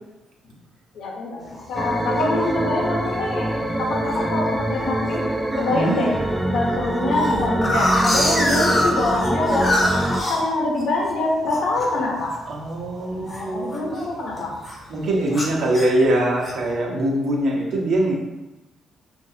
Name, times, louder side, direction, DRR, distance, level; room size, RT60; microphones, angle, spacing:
voice 1, 0.9-1.4 1.7-3.5 3.8-5.3 5.6-6.1 6.5-12.3 13.1-14.5, left 2 dB, 75° left, -2 dB, 1.0 m, -24 dB
sound 1, 1.5-1.9 2.4-2.5 2.8-3.1 3.5-4.2 4.8-5.2 5.5-5.6 5.9-6.0 6.3-11.1 11.5-14.0 14.3-14.8 15.3-16.7, left 1 dB, 30° left, 1.0 m, -25 dB
sound 2, 1.8-10.2, right 1 dB, 10° right, 0.4 m, -25 dB
voice 2, 5.7-6.0 12.5-14.1 14.9-18.2, right 1 dB, 65° right, -3 dB, 1.1 m, -22 dB
5.9 x 2.5 x 2.8 m, 1.0 s
cardioid pair, 90°, 0 cm